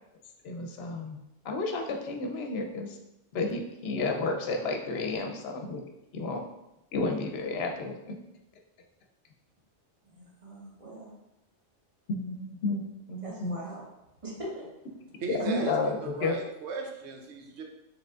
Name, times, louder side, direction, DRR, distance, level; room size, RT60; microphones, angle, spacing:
voice 1, 0.4-1.2 1.4-3.0 3.3-5.8 6.1-6.4 6.9-8.2 12.1-13.6 15.3-16.4, left 3 dB, 65° left, 3 dB, 0.8 m, -31 dB
voice 2, 10.1-11.1 13.2-13.9 14.2-14.7 15.4-15.7, right 1 dB, 30° right, -5 dB, 0.9 m, -40 dB
voice 3, 15.2-17.6, right 4 dB, 70° right, 2 dB, 0.9 m, -37 dB
4.9 x 3.2 x 2.4 m, 0.89 s
omnidirectional pair, 1.2 m